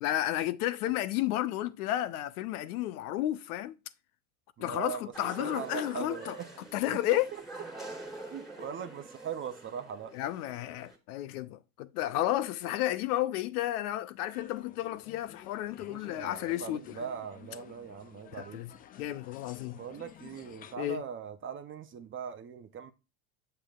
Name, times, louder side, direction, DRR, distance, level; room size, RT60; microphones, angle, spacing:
voice 1, 0.0-3.8 4.6-6.4 6.7-7.3 10.1-17.1 18.5-18.7 19.0-19.8 20.8-21.0, left 14 dB, 75° left, 0.7 m, -32 dB
voice 2, 4.6-6.3 6.9-7.2 8.3-10.1 15.9-18.6 19.7-22.9, right 7 dB, 25° right, 0.6 m, -40 dB
sound 1, 5.1-11.0, right 2 dB, ahead, 1.8 m, -46 dB
sound 2, 14.3-20.8, left 9 dB, 20° left, 0.3 m, -53 dB
7.3 x 6.7 x 2.3 m
hypercardioid pair, 95°, 45 cm